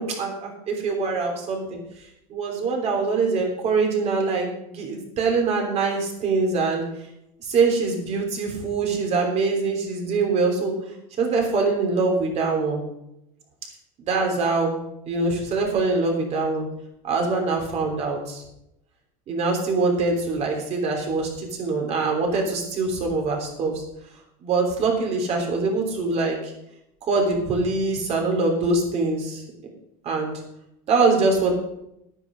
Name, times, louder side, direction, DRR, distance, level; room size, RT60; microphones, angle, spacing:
voice 1, 0.0-1.8 2.3-6.8 7.4-10.7 11.2-12.8 14.1-14.8 15.1-16.7 17.0-18.4 19.3-23.7 24.4-26.5 27.0-29.4 30.0-30.3 30.9-31.5, right 3 dB, 35° right, 1 dB, 3.2 m, -23 dB
10.5 x 9.9 x 5.1 m, 0.81 s
supercardioid pair, 150°, 18 cm